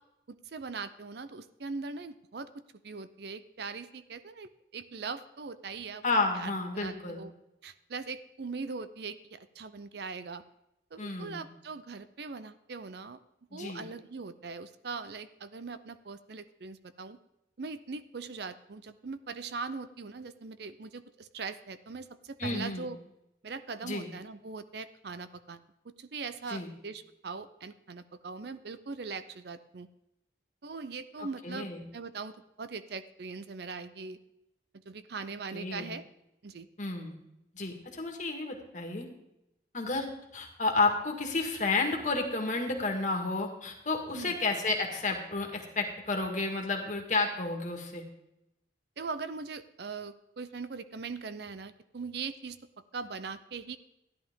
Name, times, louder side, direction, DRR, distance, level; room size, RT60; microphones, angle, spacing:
voice 1, 0.3-2.5 2.8-6.0 6.3-7.3 7.6-10.4 10.9-13.2 13.5-17.2 17.6-23.0 23.4-29.9 30.6-34.2 34.9-36.0 36.4-36.7 44.1-44.4 49.0-52.6 52.9-53.8, right 4 dB, 55° right, 13 dB, 0.5 m, -41 dB
voice 2, 6.0-7.2 11.0-11.5 13.5-13.9 22.4-22.9 23.8-24.1 26.5-26.7 31.4-31.8 35.5-35.9 36.8-37.1 37.5-39.0 39.7-40.1 40.3-48.0, left 3 dB, 40° left, 2 dB, 1.8 m, -31 dB
14.0 x 11.0 x 3.6 m, 0.88 s
head